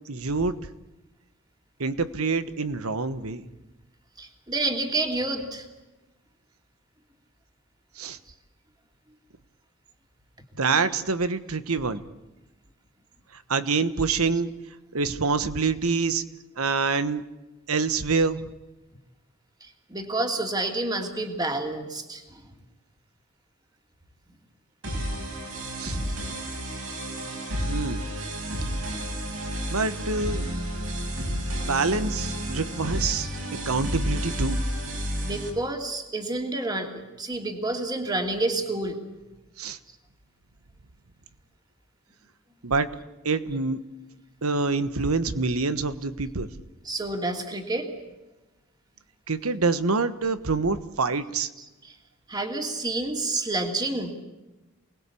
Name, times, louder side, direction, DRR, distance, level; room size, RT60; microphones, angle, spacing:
voice 1, 0.1-0.6 1.8-3.4 8.0-8.2 10.6-12.0 13.5-14.5 14.9-16.2 16.6-17.2 17.7-18.4 25.8-26.0 27.7-28.0 29.7-30.5 31.7-33.3 33.6-34.6 39.6-39.8 42.6-43.0 43.2-43.8 44.4-46.5 49.3-51.5, right 4 dB, 85° right, 12 dB, 1.3 m, -26 dB
voice 2, 4.2-5.6 14.3-14.4 19.9-22.2 33.2-33.4 35.2-39.0 46.8-47.9 51.6-51.9 52.3-54.1, right 2 dB, 20° right, 3 dB, 2.7 m, -29 dB
sound 1, 24.8-35.5, equal, 65° right, 6.8 m, -31 dB
28.0 x 20.0 x 8.5 m, 1.1 s
head